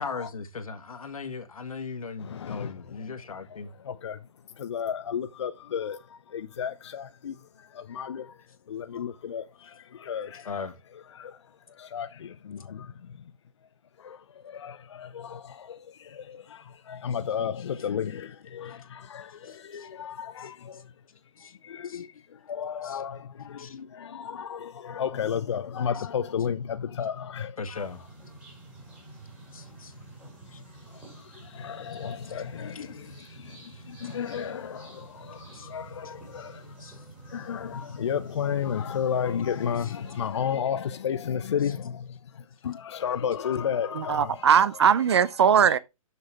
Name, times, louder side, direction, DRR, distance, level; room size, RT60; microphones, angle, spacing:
voice 1, 0.0-3.7 10.4-10.8 19.4-19.9 20.4-20.8 21.4-21.5 21.8-22.0 22.8-23.0 23.6-23.8 26.0-26.1 27.6-28.0 29.5-29.9 30.5-30.6 32.3-32.4 32.7-32.9 33.7-33.8 35.5-35.7 36.0-36.1 36.8-37.0 39.8-39.9 41.6-41.7, left 5 dB, 80° left, 1.7 m, -39 dB
voice 2, 2.2-3.1 3.8-4.2 4.6-8.4 8.7-10.5 11.1-11.4 11.7-13.2 14.0-20.9 21.4-27.8 30.9-36.9 37.2-44.5 45.6-45.8, left 8 dB, 50° left, 0.6 m, -33 dB
sound 1, 27.7-40.3, right 2 dB, 5° right, 2.5 m, -48 dB
voice 3, 44.0-45.8, right 8 dB, 50° right, 0.6 m, -20 dB
7.0 x 6.6 x 4.7 m
hypercardioid pair, 165°, 18 cm